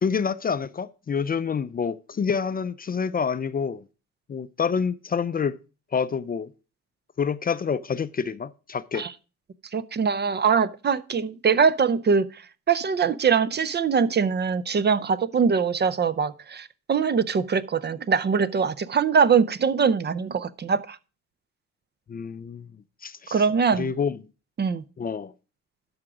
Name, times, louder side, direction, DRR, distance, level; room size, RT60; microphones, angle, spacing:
voice 1, 0.0-3.8 4.3-5.6 5.9-6.5 7.2-9.1 22.1-22.7 23.0-23.4 23.7-24.2 25.0-25.3, left 6 dB, 30° left, 0.4 m, -27 dB
voice 2, 9.7-12.4 12.7-21.0 23.3-23.9 24.6-24.8, right 6 dB, 35° right, 0.5 m, -22 dB
12.5 x 4.9 x 4.9 m
cardioid pair, 90°, 30 cm